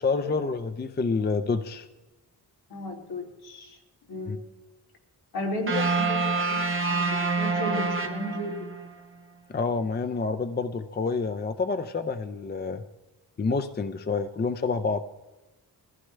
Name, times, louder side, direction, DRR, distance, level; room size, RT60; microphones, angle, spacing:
voice 1, 0.0-1.9 4.2-4.4 9.5-12.8 13.4-15.0, left 4 dB, 25° left, 10 dB, 0.5 m, -28 dB
voice 2, 2.7-3.7 4.1-4.4 5.3-8.7, left 1 dB, 70° left, -1 dB, 3.1 m, -34 dB
sound 1, 5.7-8.9, right 4 dB, 30° right, 1.2 m, -27 dB
21.5 x 15.0 x 3.3 m, 1.1 s
wide cardioid pair, 140°, 39 cm